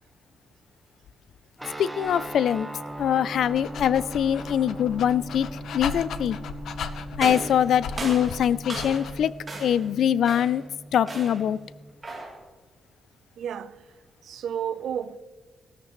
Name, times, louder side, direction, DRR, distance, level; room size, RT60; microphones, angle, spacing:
sound 1, 1.6-11.9, right 1 dB, 5° right, 0.8 m, -40 dB
voice 1, 1.8-2.7 3.0-5.5 5.7-6.4 7.2-9.3 9.6-10.6 10.9-11.6, left 9 dB, 70° left, 0.4 m, -23 dB
Dog, 3.3-9.3, left 5 dB, 85° left, 0.8 m, -37 dB
sound 2, 7.2-9.2 9.5-9.9 10.2-10.6 11.1-11.5 12.0-12.4, right 2 dB, 20° right, 3.1 m, -36 dB
voice 2, 13.4-13.8 14.2-15.2, right 8 dB, 75° right, 0.5 m, -31 dB
17.5 x 13.5 x 3.1 m
wide cardioid pair, 180°, 0 cm